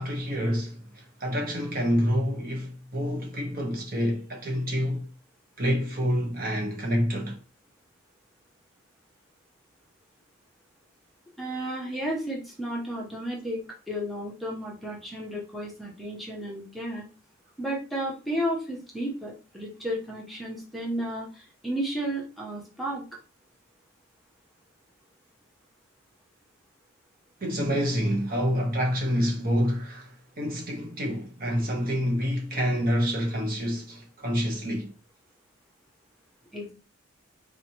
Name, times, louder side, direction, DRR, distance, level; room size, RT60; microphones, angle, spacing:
voice 1, 0.0-5.1 5.6-7.4 27.4-34.9, equal, 45° right, 1.1 m, -27 dB
voice 2, 11.4-13.6 13.9-17.0 17.6-23.0 36.5-36.7, right 1 dB, ahead, 0.9 m, -33 dB
4.1 x 3.0 x 2.9 m
head